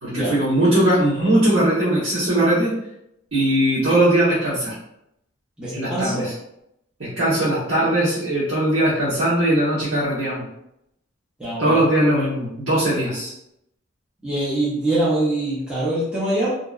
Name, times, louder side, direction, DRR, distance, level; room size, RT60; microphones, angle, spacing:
voice 1, 0.0-2.7 3.3-4.7 5.7-6.3 7.0-10.4 11.6-13.3, right 1 dB, 75° right, -12 dB, 1.0 m, -20 dB
voice 2, 5.6-6.3 11.4-11.8 14.2-16.5, right 1 dB, 5° right, -10 dB, 0.6 m, -23 dB
2.7 x 2.1 x 2.3 m, 0.80 s
head